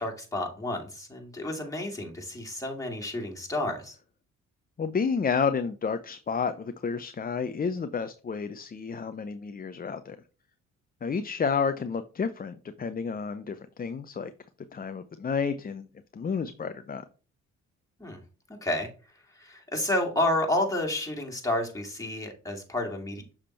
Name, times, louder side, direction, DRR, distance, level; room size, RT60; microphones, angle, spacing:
voice 1, 0.0-3.9 18.0-18.2 18.6-18.9 19.4-23.2, left 1 dB, 10° left, 0 dB, 2.3 m, -30 dB
voice 2, 4.8-10.2 11.0-14.3 14.7-15.9 16.1-17.0, left 5 dB, 25° left, 10 dB, 0.5 m, -30 dB
6.6 x 3.6 x 4.3 m, 0.37 s
supercardioid pair, 55°, 34 cm